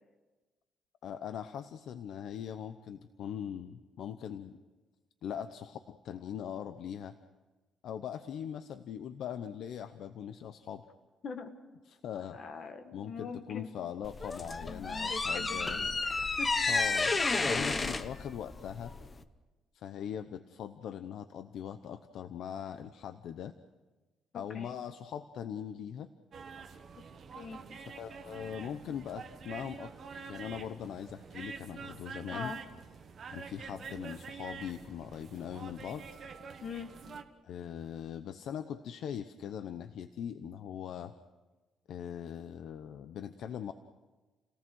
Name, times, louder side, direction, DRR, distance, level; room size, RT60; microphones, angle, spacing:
voice 1, 1.0-4.6 5.2-7.2 7.8-10.9 11.9-12.4 12.9-15.9 16.7-18.9 19.7-23.5 24.3-26.1 28.0-29.9 30.2-32.5 33.3-36.1 37.4-41.1 41.9-43.7, left 9 dB, 55° left, 10 dB, 0.8 m, -41 dB
voice 2, 12.3-13.7 14.6-16.5 24.3-24.8 27.4-27.6 32.3-32.6 36.6-36.9, left 5 dB, 40° left, 6 dB, 1.8 m, -43 dB
sound 1, 14.0-19.2, left 3 dB, 20° left, 0.8 m, -31 dB
sound 2, 26.3-37.2, right 5 dB, 35° right, 1.3 m, -46 dB
30.0 x 18.0 x 6.3 m, 1.2 s
cardioid pair, 180°, 0 cm